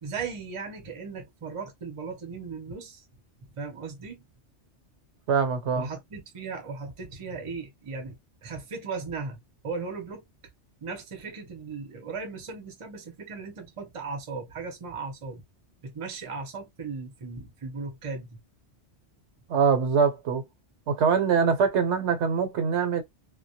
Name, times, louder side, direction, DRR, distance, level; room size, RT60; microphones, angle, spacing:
voice 1, 0.0-3.0 3.6-4.2 5.8-10.2 10.8-15.4 15.8-18.4, right 4 dB, 35° right, 0.6 m, -37 dB
voice 2, 5.3-5.9 19.5-20.4 20.9-23.0, right 6 dB, 70° right, 1.0 m, -23 dB
2.2 x 2.1 x 2.7 m
omnidirectional pair, 1.2 m